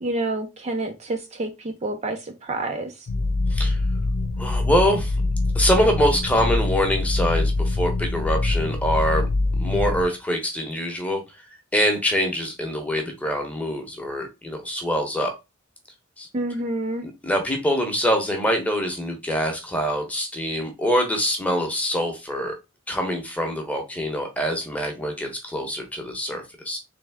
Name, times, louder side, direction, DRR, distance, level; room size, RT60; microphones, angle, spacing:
voice 1, 0.0-3.1 16.3-17.1, right 2 dB, 35° right, 0.6 m, -28 dB
sound 1, 3.1-10.0, left 2 dB, 90° left, 0.6 m, -24 dB
voice 2, 4.4-5.1 5.5-9.3 9.6-11.2 11.7-15.3 16.2-16.3 17.0-22.6 22.9-26.8, equal, 5° left, 1.0 m, -24 dB
3.5 x 3.4 x 3.5 m
head